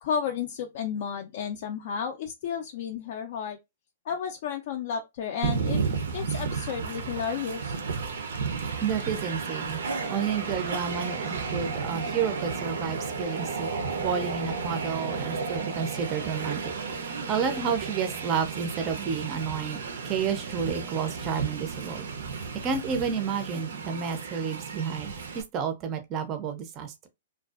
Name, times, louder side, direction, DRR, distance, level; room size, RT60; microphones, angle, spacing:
voice 1, 0.0-3.6 4.1-5.8 6.1-7.8, left 7 dB, 50° left, 0.3 m, -32 dB
Train, 5.4-25.4, right 5 dB, 80° right, 0.5 m, -33 dB
voice 2, 8.8-9.8 10.1-13.7 14.0-16.6 17.0-22.1 22.5-27.1, right 6 dB, 25° right, 0.4 m, -31 dB
2.5 x 2.2 x 2.3 m
hypercardioid pair, 160°, 0 cm